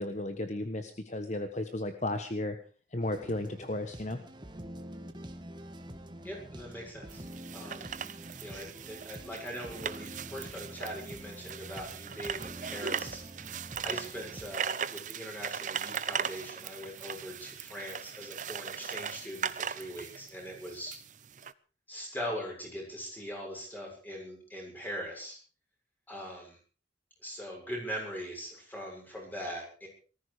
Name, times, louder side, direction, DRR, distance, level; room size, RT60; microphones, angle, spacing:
voice 1, 0.0-2.6 2.9-4.2, left 1 dB, 40° left, 8 dB, 1.2 m, -34 dB
sound 1, 3.0-14.6, right 1 dB, 25° right, 1.6 m, -47 dB
voice 2, 6.2-7.3 7.5-7.9 8.4-21.0 21.9-25.4 26.1-26.6 27.2-29.9, equal, 10° left, 0 dB, 6.9 m, -41 dB
sound 2, 7.1-21.5, right 7 dB, 40° right, 0.7 m, -39 dB
19.0 x 14.5 x 5.0 m, 0.38 s
head